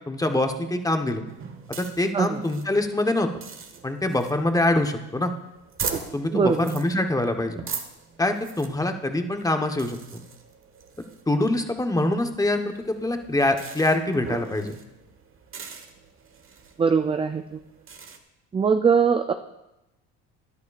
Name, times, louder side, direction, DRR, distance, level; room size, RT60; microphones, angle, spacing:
voice 1, 0.1-1.2 1.7-3.3 3.8-5.3 6.1-7.6 8.2-10.2 11.3-14.8, left 1 dB, 10° left, 5 dB, 1.1 m, -24 dB
sound 1, 1.2-18.2, right 6 dB, 35° right, 1.3 m, -40 dB
voice 2, 6.3-6.7 16.8-17.6 18.5-19.3, right 6 dB, 15° right, 8 dB, 0.4 m, -21 dB
13.0 x 10.5 x 2.5 m, 0.92 s
supercardioid pair, 85°, 36 cm